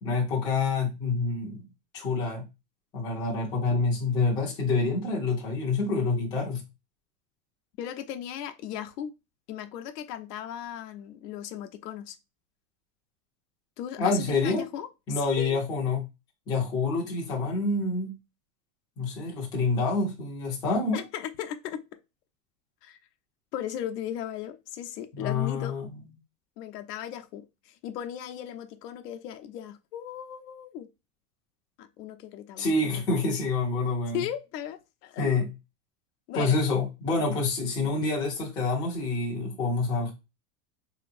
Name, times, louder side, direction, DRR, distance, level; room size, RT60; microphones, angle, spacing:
voice 1, 0.0-1.7 1.9-2.4 2.9-6.6 14.0-14.6 15.1-16.0 16.5-18.1 19.0-21.0 25.1-25.9 32.6-34.2 35.2-35.5 36.3-40.1, left 3 dB, 10° left, 0.4 m, -27 dB
voice 2, 7.8-9.1 9.5-12.2 13.8-15.6 20.9-21.8 22.8-23.0 23.5-25.8 26.6-30.9 31.8-32.7 33.0-33.3 34.1-35.4 36.3-36.6, left 10 dB, 75° left, 0.7 m, -37 dB
3.8 x 2.9 x 2.5 m
supercardioid pair, 165°, 47 cm